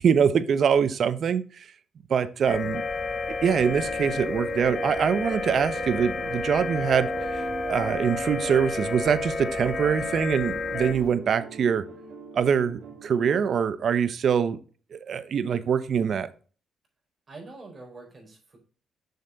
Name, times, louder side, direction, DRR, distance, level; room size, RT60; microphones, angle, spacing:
voice 1, 0.0-1.7 2.1-2.8 3.4-11.8 12.3-14.6 14.9-16.3, right 7 dB, 55° right, 0.8 m, -24 dB
sound 1, 2.4-11.2, left 1 dB, 15° left, 1.0 m, -45 dB
sound 2, 2.5-10.9, left 3 dB, 35° left, 1.4 m, -31 dB
sound 3, 3.7-13.4, right 5 dB, 75° right, 1.3 m, -42 dB
voice 2, 17.3-18.6, right 3 dB, 35° right, 4.2 m, -45 dB
6.7 x 6.6 x 3.9 m
cardioid pair, 90°, 0 cm